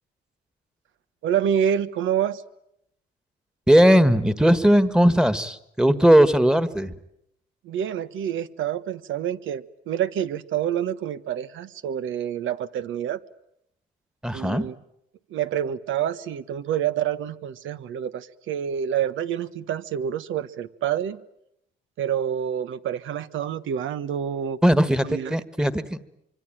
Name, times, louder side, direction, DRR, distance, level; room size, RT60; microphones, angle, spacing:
voice 1, 1.2-2.4 7.6-13.2 14.3-14.7 15.3-21.2 22.0-24.6 25.0-25.7, right 9 dB, 80° right, 13 dB, 1.2 m, -27 dB
voice 2, 3.7-6.9 14.2-14.6 24.6-26.0, equal, 5° right, 13 dB, 1.7 m, -18 dB
25.0 x 25.0 x 9.1 m, 0.79 s
cardioid pair, 90°, 20 cm